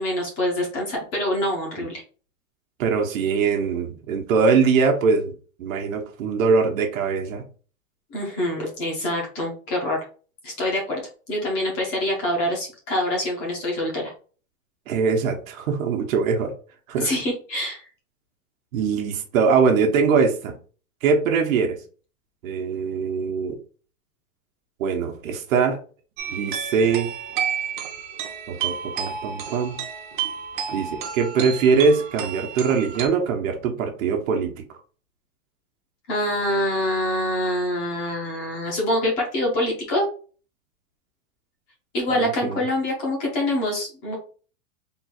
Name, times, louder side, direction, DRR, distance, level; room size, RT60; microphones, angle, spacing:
voice 1, 0.0-2.0 8.1-10.0 10.4-11.0 11.3-14.0 17.0-17.8 36.1-40.1 41.9-44.2, left 1 dB, 15° left, -1 dB, 0.5 m, -25 dB
voice 2, 2.8-5.3 5.6-7.4 14.9-16.5 16.9-17.1 18.7-20.5 21.0-21.8 22.4-23.5 24.8-25.8 26.3-27.1 28.5-29.8 30.7-34.5 42.1-42.6, right 5 dB, 80° right, 2 dB, 1.0 m, -22 dB
sound 1, 26.2-33.1, right 7 dB, 40° right, 0.6 m, -31 dB
3.7 x 2.3 x 4.2 m, 0.39 s
supercardioid pair, 175°, 40 cm